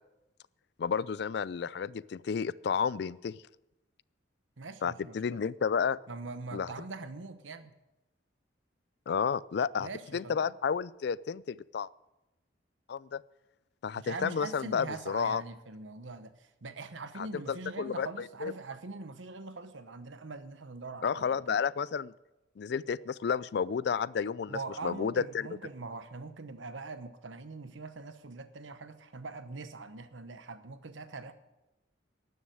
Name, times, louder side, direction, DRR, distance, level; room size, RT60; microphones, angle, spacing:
voice 1, 0.8-3.4 4.8-6.0 6.5-6.7 9.1-11.9 12.9-13.2 13.8-15.4 17.2-18.5 21.0-22.1 22.6-25.5, left 6 dB, 60° left, 21 dB, 0.3 m, -31 dB
voice 2, 4.6-5.4 6.1-7.7 9.8-10.6 14.0-21.6 24.5-31.3, right 3 dB, 80° right, 11 dB, 1.0 m, -43 dB
12.5 x 7.2 x 9.1 m, 0.97 s
head